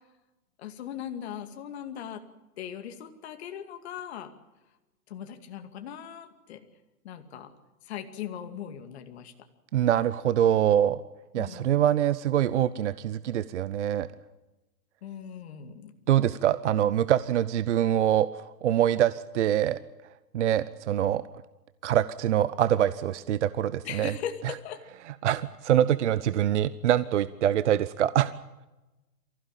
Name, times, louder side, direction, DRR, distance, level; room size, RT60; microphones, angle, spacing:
voice 1, 0.6-2.2 2.6-4.3 5.1-6.6 7.0-7.5 7.8-9.3 11.4-11.8 15.0-15.9 23.8-24.8, left 9 dB, 40° left, 8 dB, 2.4 m, -39 dB
voice 2, 9.7-11.0 11.3-14.1 16.1-19.8 20.3-21.2 21.8-24.1 25.2-28.3, right 11 dB, 50° right, 16 dB, 0.8 m, -24 dB
24.0 x 16.0 x 9.0 m, 1.1 s
hypercardioid pair, 155°, 47 cm